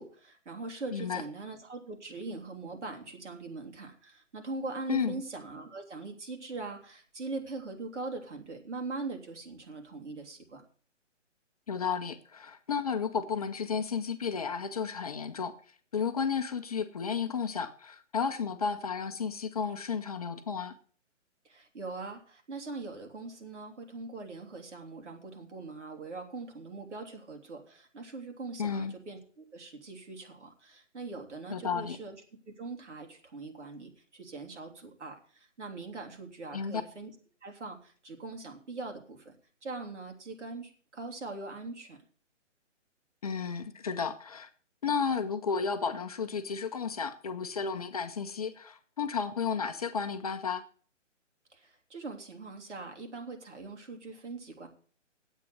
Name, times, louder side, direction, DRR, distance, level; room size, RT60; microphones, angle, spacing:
voice 1, 0.0-10.6 21.4-32.2 32.5-37.1 37.4-39.3 39.6-42.0 51.5-54.7, right 3 dB, 65° right, 4 dB, 3.4 m, -41 dB
voice 2, 0.9-1.2 4.9-5.2 11.7-15.5 15.9-20.8 28.6-28.9 31.5-32.0 36.5-36.8 43.2-44.5 44.8-50.6, left 6 dB, 30° left, 8 dB, 0.7 m, -32 dB
9.4 x 8.4 x 7.9 m, 0.43 s
figure-of-eight pair, 150°, 37 cm